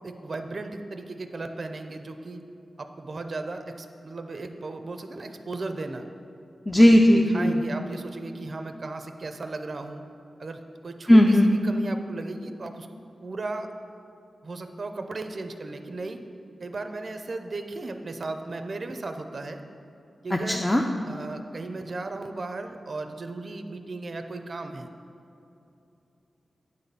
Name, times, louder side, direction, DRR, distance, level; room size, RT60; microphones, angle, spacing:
voice 1, 0.0-2.4 2.8-6.1 7.3-10.0 10.4-12.9 13.2-13.7 14.4-16.2 16.6-19.6 20.2-20.6 21.0-24.9, right 3 dB, 50° right, 6 dB, 0.5 m, -36 dB
voice 2, 6.7-7.6 11.1-11.5 20.3-20.8, equal, 15° left, 2 dB, 0.4 m, -17 dB
9.3 x 4.1 x 6.8 m, 2.8 s
wide cardioid pair, 90°, 0 cm